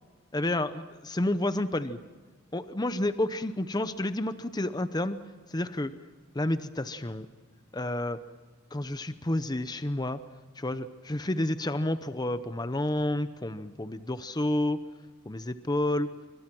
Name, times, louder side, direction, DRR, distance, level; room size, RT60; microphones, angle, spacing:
voice 1, 0.3-2.0 2.5-5.2 5.5-5.9 6.3-7.3 7.7-8.2 8.7-10.2 10.6-14.8 15.3-16.1, left 1 dB, 20° left, 12 dB, 0.7 m, -30 dB
26.5 x 25.0 x 6.1 m, 1.4 s
head